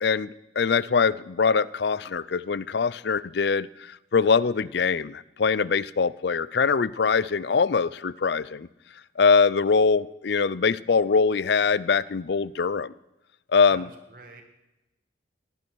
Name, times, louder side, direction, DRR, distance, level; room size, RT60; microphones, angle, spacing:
voice 1, 0.0-8.7 9.2-12.9 13.5-13.9, left 5 dB, 65° left, 20 dB, 0.5 m, -23 dB
voice 2, 13.7-14.4, right 3 dB, 45° right, 3 dB, 1.9 m, -47 dB
17.5 x 10.5 x 6.2 m, 0.95 s
head